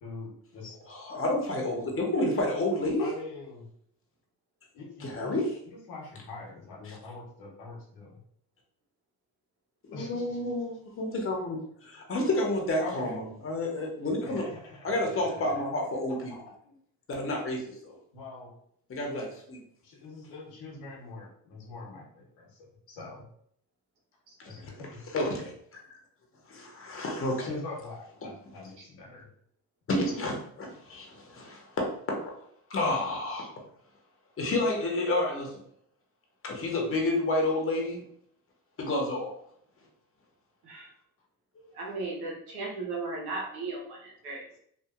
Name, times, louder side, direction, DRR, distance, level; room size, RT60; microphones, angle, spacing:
voice 1, 0.0-0.8 3.0-3.7 4.7-8.2 9.9-10.5 12.8-13.4 14.2-15.7 16.1-16.2 16.6-16.8 18.1-18.5 19.8-23.3 24.5-25.0 27.4-29.3, left 3 dB, 80° left, -2 dB, 1.0 m, -43 dB
voice 2, 0.9-3.1 5.0-5.4 9.9-14.4 14.8-16.3 17.1-18.0 18.9-19.6 24.4-24.6 25.1-25.5 25.9-26.0 26.5-27.5 29.9-32.2 32.7-33.5 34.4-35.5 36.4-38.0 38.8-39.3, left 2 dB, 35° left, 0 dB, 0.9 m, -30 dB
voice 3, 41.7-44.6, right 3 dB, 80° right, -2 dB, 1.0 m, -36 dB
2.7 x 2.4 x 2.4 m, 0.66 s
supercardioid pair, 65°, 39 cm